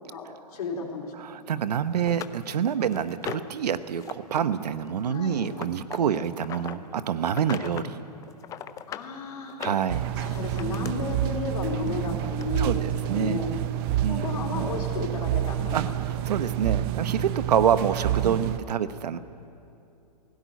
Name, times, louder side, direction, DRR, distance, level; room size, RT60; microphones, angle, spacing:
voice 1, 0.1-1.1 5.1-5.5 7.6-7.8 8.9-9.6 10.2-13.5 14.0-16.0, left 4 dB, 65° left, 0 dB, 4.1 m, -33 dB
voice 2, 1.2-8.0 9.6-10.1 12.6-13.4 14.0-14.2 15.7-19.2, right 8 dB, 75° right, 12 dB, 1.1 m, -27 dB
sound 1, 1.5-1.6 2.1-3.6 4.0-4.4 4.7-6.8 7.3-7.9 8.2-9.1 9.5-10.9 11.9-12.0 12.4-12.5, left 10 dB, 15° left, 0.5 m, -38 dB
sound 2, 9.9-18.6, right 12 dB, 35° right, 0.7 m, -28 dB
17.5 x 16.5 x 9.3 m, 2.7 s
hypercardioid pair, 140°, 21 cm